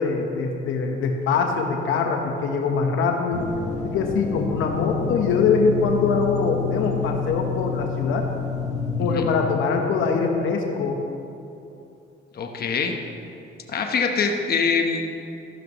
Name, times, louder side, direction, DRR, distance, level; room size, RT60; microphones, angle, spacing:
voice 1, 0.0-3.5 3.8-8.3 9.0-11.0, left 5 dB, 80° left, 3 dB, 1.1 m, -23 dB
sound 1, 3.3-9.2, left 5 dB, 35° left, 1.7 m, -29 dB
voice 2, 9.0-9.3 12.3-12.9 13.7-15.1, left 5 dB, 50° left, 3 dB, 1.1 m, -24 dB
14.0 x 11.5 x 3.1 m, 2.7 s
cardioid pair, 90°, 20 cm